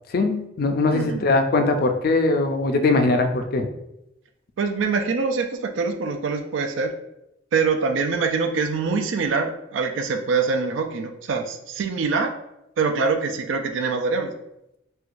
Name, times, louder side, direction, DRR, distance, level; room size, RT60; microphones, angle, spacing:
voice 1, 0.1-3.7, left 3 dB, 50° left, 6 dB, 0.4 m, -21 dB
voice 2, 0.9-1.3 4.6-6.9 7.5-12.3 12.8-14.3, right 4 dB, 75° right, 6 dB, 0.4 m, -24 dB
4.4 x 2.3 x 2.5 m, 0.87 s
head